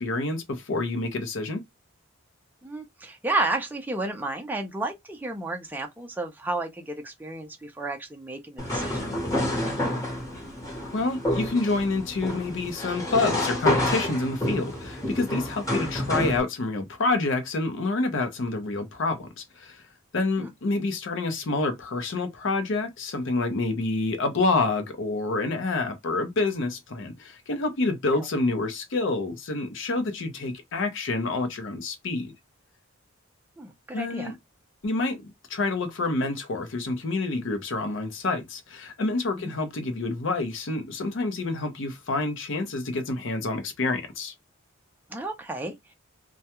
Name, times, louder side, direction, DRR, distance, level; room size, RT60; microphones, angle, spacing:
voice 1, 0.0-1.6 10.9-19.8 20.1-32.3 33.9-34.4 34.8-35.2 35.5-44.3, left 3 dB, 65° left, 0.6 m, -28 dB
voice 2, 2.6-9.1 20.4-20.5 33.6-34.3 39.4-39.5 45.1-45.9, right 2 dB, 10° right, 0.4 m, -32 dB
sound 1, 8.6-16.4, left 1 dB, 15° left, 1.0 m, -28 dB
2.2 x 2.2 x 2.8 m
head